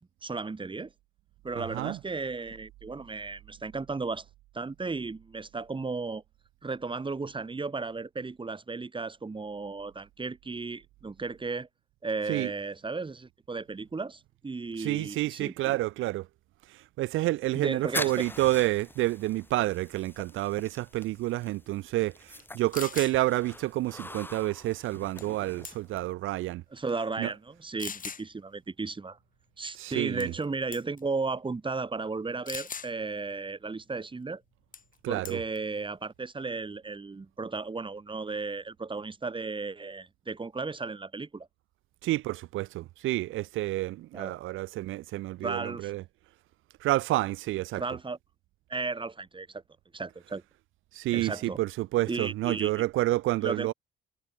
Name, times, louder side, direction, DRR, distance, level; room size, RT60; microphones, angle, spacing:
voice 1, 0.2-0.9 1.4-4.2 4.5-6.2 6.6-11.7 12.0-15.8 17.5-18.2 26.7-29.2 29.6-34.4 35.1-41.5 44.1-44.3 45.4-45.9 47.7-48.2 48.7-49.6 49.9-50.4 51.1-51.6 52.1-52.8 53.4-53.7, right 4 dB, 25° right, 3.1 m, -35 dB
voice 2, 1.6-2.0 12.3-12.5 14.8-16.3 16.7-26.6 27.2-27.3 29.7-30.3 35.0-35.4 42.0-46.0 46.8-47.8 50.9-53.7, right 17 dB, 85° right, 0.7 m, -29 dB
sound 1, 17.4-26.1, left 2 dB, 10° left, 1.7 m, -43 dB
sound 2, 22.4-22.5 22.7-23.2 25.2-25.4 25.6-26.1 26.8-26.9 27.8-28.2 30.2-30.4 30.7-31.0 32.5-32.9 34.7-34.9 35.2-35.6, left 6 dB, 45° left, 3.8 m, -39 dB
cardioid pair, 90°, 20 cm